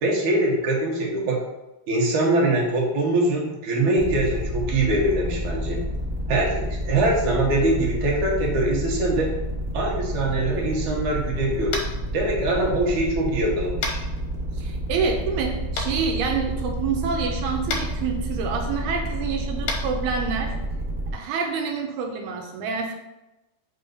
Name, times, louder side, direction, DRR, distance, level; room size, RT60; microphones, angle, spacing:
voice 1, 0.0-1.4 1.9-5.8 6.3-9.4 9.7-11.8 12.1-14.0, right 2 dB, 60° right, -2 dB, 2.5 m, -23 dB
sound 1, 4.0-21.1, equal, 15° right, 2.3 m, -29 dB
Tap, 11.7-12.0 13.8-14.0 15.8-15.9 17.7-17.8 19.6-19.8, left 3 dB, 60° left, 2.0 m, -27 dB
voice 2, 14.5-20.5 21.1-22.9, right 5 dB, 80° right, 2 dB, 2.7 m, -27 dB
5.5 x 5.5 x 5.4 m, 0.98 s
omnidirectional pair, 4.5 m